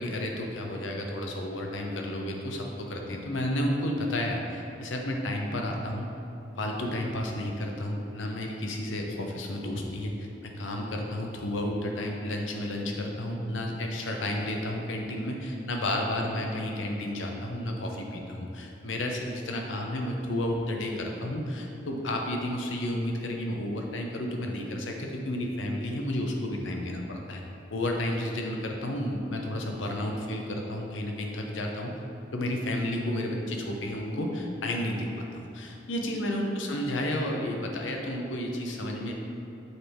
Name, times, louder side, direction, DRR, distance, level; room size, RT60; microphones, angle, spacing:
voice 1, 0.0-6.0 6.6-27.4 27.7-31.9 32.3-39.1, left 1 dB, 90° left, 1 dB, 0.8 m, -32 dB
6.6 x 4.5 x 3.5 m, 2.8 s
head